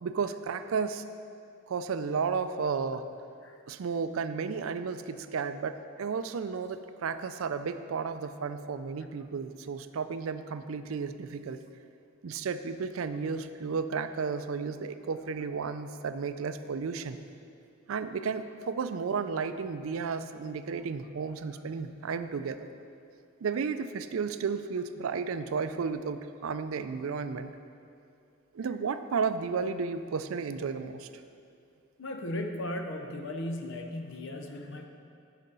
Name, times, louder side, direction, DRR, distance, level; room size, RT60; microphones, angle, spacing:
voice 1, 0.0-1.1 1.7-3.1 3.7-11.6 12.2-17.2 17.9-22.6 23.4-27.5 28.5-31.1, right 5 dB, 75° right, 11 dB, 0.4 m, -33 dB
voice 2, 32.0-34.8, left 1 dB, 60° left, 5 dB, 0.7 m, -36 dB
9.9 x 5.0 x 5.4 m, 2.5 s
head